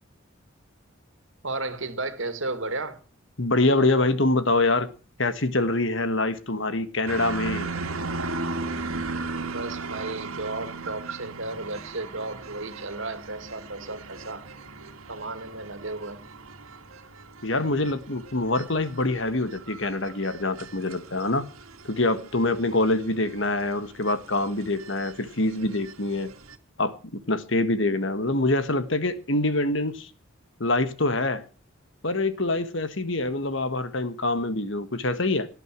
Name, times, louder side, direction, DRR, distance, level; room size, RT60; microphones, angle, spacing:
voice 1, 1.4-3.0 9.4-14.4 15.1-16.2, right 2 dB, 65° right, 2.4 m, -34 dB
voice 2, 3.4-4.9 5.2-7.7 17.4-21.4 21.9-26.3 26.8-30.1 30.6-31.5 32.0-35.5, left 2 dB, 60° left, 1.7 m, -25 dB
sound 1, 7.1-26.6, right 3 dB, 85° right, 2.2 m, -37 dB
18.5 x 11.0 x 6.2 m
head